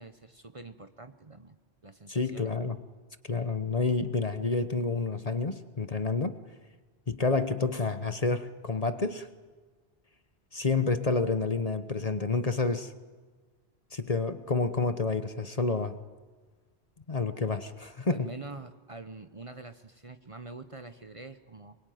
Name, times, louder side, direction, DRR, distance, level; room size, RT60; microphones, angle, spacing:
voice 1, 0.0-1.6 1.8-2.5 18.1-21.8, right 3 dB, 30° right, 9 dB, 0.9 m, -45 dB
voice 2, 2.1-2.8 3.3-6.4 7.1-9.3 10.5-12.9 13.9-16.0 17.1-18.3, left 3 dB, 35° left, 10 dB, 1.1 m, -29 dB
24.5 x 22.0 x 9.3 m, 1.4 s
omnidirectional pair, 1.1 m